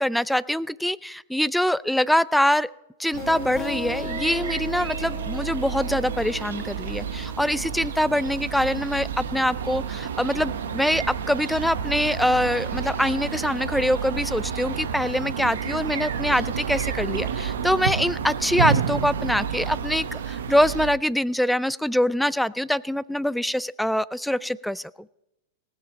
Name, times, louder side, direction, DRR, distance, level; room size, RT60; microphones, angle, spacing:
voice 1, 0.0-2.7 3.0-24.9, left 1 dB, ahead, 20 dB, 0.3 m, -24 dB
sound 1, 3.1-20.9, right 7 dB, 75° right, 1.0 m, -30 dB
sound 2, 3.2-8.5, left 4 dB, 25° left, 1.9 m, -38 dB
19.0 x 7.4 x 5.2 m, 0.93 s
hypercardioid pair, 105°, 0 cm